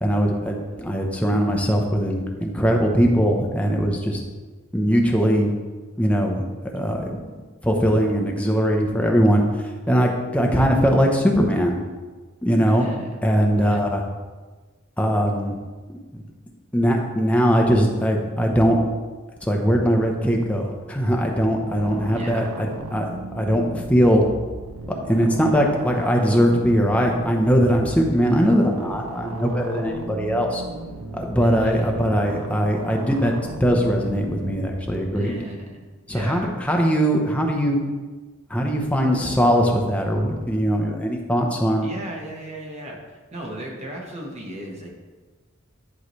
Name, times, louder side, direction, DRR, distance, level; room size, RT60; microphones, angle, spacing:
voice 1, 0.0-4.2 4.7-5.5 6.0-6.4 6.7-7.2 7.6-11.8 12.4-12.9 13.2-14.0 15.0-15.6 15.9-16.2 16.7-18.8 19.4-22.4 22.9-24.2 24.9-30.6 31.1-33.3 33.6-35.3 36.1-37.8 38.5-41.9, equal, 5° left, 0 dB, 0.8 m, -20 dB
voice 2, 12.7-13.1 13.6-13.8 22.0-22.5 31.4-31.9 35.1-36.5 41.8-44.9, right 1 dB, 30° right, -1 dB, 1.4 m, -36 dB
sound 1, 21.7-35.0, right 2 dB, 80° right, 0.7 m, -36 dB
10.5 x 4.8 x 3.2 m, 1.3 s
head